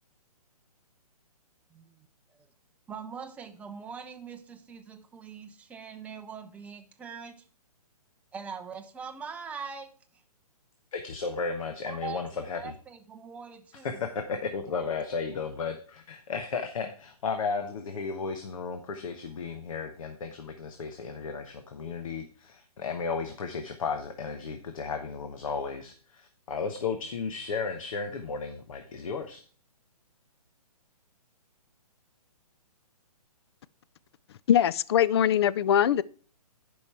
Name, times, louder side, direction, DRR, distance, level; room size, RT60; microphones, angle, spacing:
voice 1, 1.7-2.1 2.9-7.4 8.3-10.2 11.9-14.2, right 6 dB, 5° right, 0.6 m, -42 dB
voice 2, 10.9-12.7 13.8-29.4, left 5 dB, 60° left, 1.1 m, -34 dB
voice 3, 34.5-36.0, left 9 dB, 45° left, 0.4 m, -22 dB
10.5 x 5.4 x 4.5 m
hypercardioid pair, 150°, 20 cm